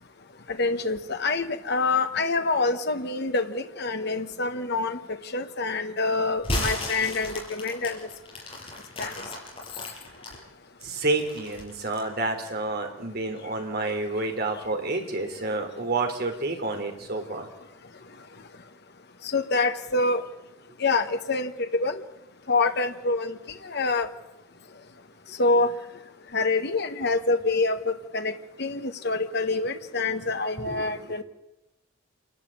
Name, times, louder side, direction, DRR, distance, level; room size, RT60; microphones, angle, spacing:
voice 1, 0.5-8.1 9.0-9.1 19.2-20.2 20.8-22.0 22.5-23.4 23.6-24.1 25.4-25.7 26.3-28.3 28.6-31.2, left 3 dB, 55° left, 7 dB, 1.3 m, -26 dB
sound 1, 6.4-10.3 10.8-12.1, left 1 dB, 30° left, 6.0 m, -33 dB
voice 2, 10.8-17.5 30.6-30.9, right 2 dB, 50° right, 4 dB, 3.4 m, -29 dB
27.5 x 12.5 x 8.8 m, 0.92 s
head